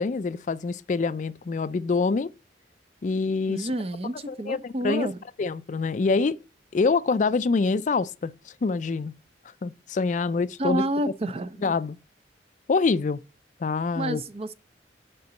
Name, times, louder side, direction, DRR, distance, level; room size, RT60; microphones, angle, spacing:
voice 1, 0.0-2.3 3.0-3.7 4.5-5.1 5.4-6.4 6.7-9.1 9.6-10.8 11.6-12.0 12.7-13.2 13.6-14.2, left 4 dB, 40° left, 0.4 m, -25 dB
voice 2, 3.5-5.2 10.6-11.7 13.9-14.5, right 1 dB, 35° right, 0.5 m, -29 dB
6.6 x 5.2 x 6.9 m
head